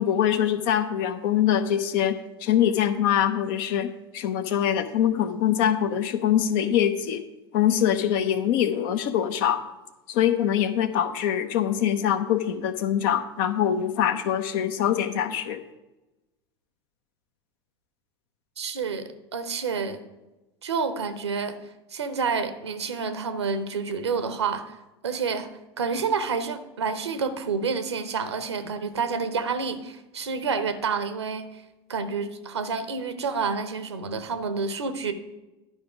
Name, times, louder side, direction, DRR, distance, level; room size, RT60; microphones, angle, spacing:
voice 1, 0.0-7.2 7.5-9.6 10.1-15.6, left 10 dB, 55° left, 9 dB, 0.8 m, -24 dB
voice 2, 18.6-20.0 20.6-21.6 21.9-24.8 25.0-31.6 31.9-35.1, right 5 dB, 75° right, 11 dB, 0.9 m, -29 dB
11.5 x 5.2 x 5.0 m, 1.0 s
figure-of-eight pair, 80°, 14 cm